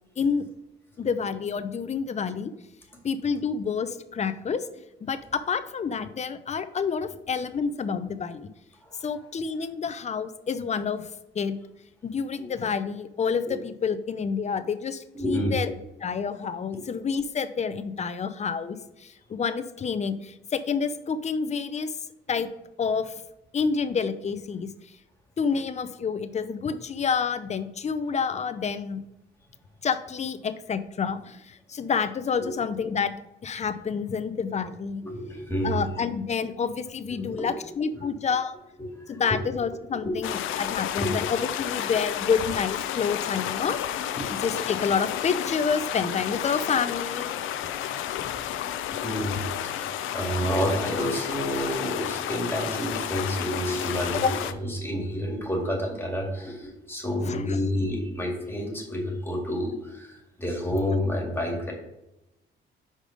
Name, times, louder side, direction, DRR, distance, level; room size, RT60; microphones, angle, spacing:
voice 1, 1.0-2.5 3.0-4.7 5.0-8.5 9.0-11.1 11.3-11.6 12.0-15.7 16.0-22.0 22.3-22.5 22.8-23.1 23.5-24.7 25.4-29.0 29.8-33.1 33.4-35.0 35.6-38.5 39.1-43.8 44.2-47.3 48.2-48.4 48.9-49.0 54.2-54.3 57.3-57.6, left 6 dB, 35° left, 11 dB, 0.6 m, -28 dB
voice 2, 15.1-15.6 16.7-16.8 32.4-32.5 35.0-35.9 37.2-37.5 37.9-38.1 38.8-39.2 40.0-40.1 41.0-41.1 44.1-44.2 49.0-61.7, equal, 10° left, -1 dB, 2.1 m, -29 dB
sound 1, 40.2-54.5, left 11 dB, 85° left, 0.5 m, -31 dB
5.2 x 5.0 x 5.2 m, 0.90 s
cardioid pair, 90°, 20 cm